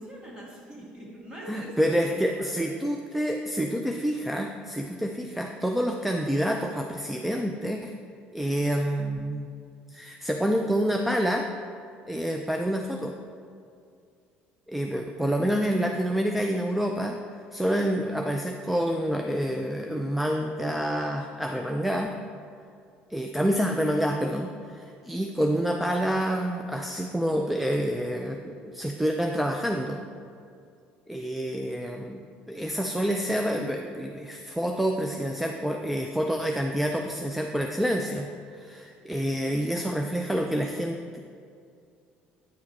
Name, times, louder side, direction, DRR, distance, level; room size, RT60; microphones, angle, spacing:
voice 1, 0.0-2.7, right 1 dB, 25° right, -4 dB, 1.9 m, -42 dB
voice 2, 1.5-7.9 8.3-9.5 9.9-11.5 12.1-13.2 14.7-17.2 17.5-22.1 23.1-30.0 31.1-38.3 38.5-41.2, equal, 5° right, 3 dB, 0.3 m, -28 dB
9.3 x 5.0 x 4.1 m, 2.4 s
cardioid pair, 145°, 4 cm